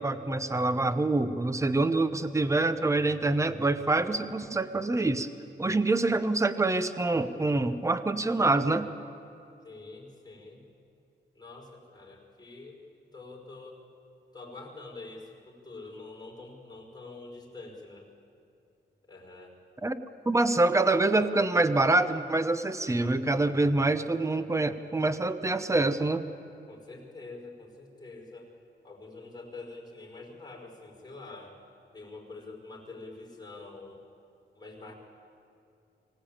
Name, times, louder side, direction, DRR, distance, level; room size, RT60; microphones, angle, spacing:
voice 1, 0.0-5.3 5.6-8.9 19.8-20.0 20.3-26.2, right 2 dB, 15° right, 11 dB, 0.9 m, -26 dB
voice 2, 9.6-10.6 11.3-12.8 13.1-13.8 14.3-18.1 19.1-19.6 26.7-28.5 28.8-31.6 31.9-34.0 34.6-34.9, left 3 dB, 20° left, -2 dB, 5.4 m, -46 dB
24.5 x 18.0 x 8.8 m, 2.7 s
wide cardioid pair, 130°, 19 cm